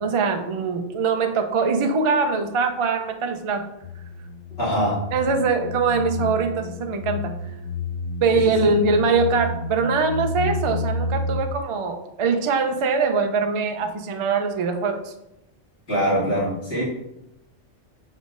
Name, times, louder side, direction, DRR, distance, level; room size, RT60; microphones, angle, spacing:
voice 1, 0.0-3.7 5.1-7.3 8.2-15.1, right 4 dB, 45° right, 5 dB, 0.4 m, -22 dB
sound 1, 3.8-11.4, left 2 dB, 85° left, 1.0 m, -30 dB
voice 2, 4.6-5.0 8.3-8.7 15.9-16.8, equal, 55° left, -9 dB, 2.8 m, -24 dB
7.1 x 5.2 x 2.5 m, 0.87 s
omnidirectional pair, 1.3 m